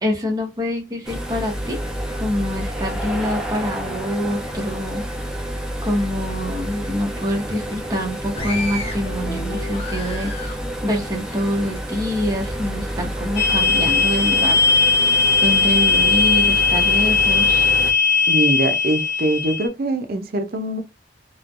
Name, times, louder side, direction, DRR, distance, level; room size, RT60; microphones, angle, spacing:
voice 1, 0.0-1.8 2.2-5.0 5.8-10.5 10.8-14.6 15.4-17.7, left 1 dB, 20° right, 0.9 m, -25 dB
sound 1, 1.0-17.9, equal, 5° right, 0.5 m, -29 dB
sound 2, 8.3-12.0 12.4-13.4 14.0-14.3, left 1 dB, 30° left, 0.8 m, -34 dB
sound 3, 13.4-19.7, left 4 dB, 65° left, 0.7 m, -18 dB
voice 2, 18.3-20.8, right 1 dB, 55° right, 0.5 m, -23 dB
3.1 x 2.2 x 2.4 m
head